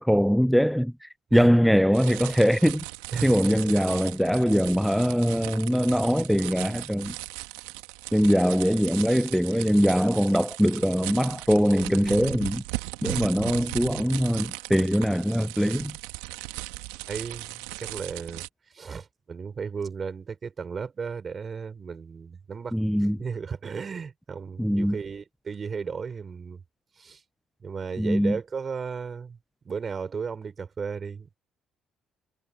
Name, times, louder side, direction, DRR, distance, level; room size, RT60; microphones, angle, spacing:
voice 1, 0.0-2.8 3.2-7.1 8.1-12.6 13.0-16.0 22.7-23.2 24.6-25.0 28.0-28.4, equal, ahead, 0.4 m, -22 dB
sound 1, 1.9-18.5, right 20 dB, 85° right, 1.4 m, -37 dB
voice 2, 3.1-3.6 17.1-18.4 18.7-26.6 27.0-27.2 27.6-29.4 29.6-31.4, right 5 dB, 40° right, 4.8 m, -35 dB
supercardioid pair, 65°, 0 cm